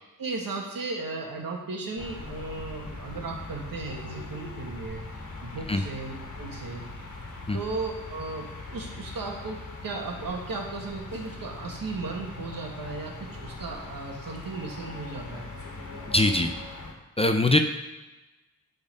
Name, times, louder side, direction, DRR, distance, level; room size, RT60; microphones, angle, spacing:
voice 1, 0.2-15.5, right 3 dB, 75° right, 0 dB, 1.6 m, -36 dB
sound 1, 2.0-16.9, left 2 dB, 60° left, 1.5 m, -41 dB
voice 2, 16.1-16.5 17.2-17.6, left 2 dB, 20° left, 6 dB, 0.4 m, -21 dB
10.5 x 4.0 x 5.3 m, 1.1 s
wide cardioid pair, 150°, 34 cm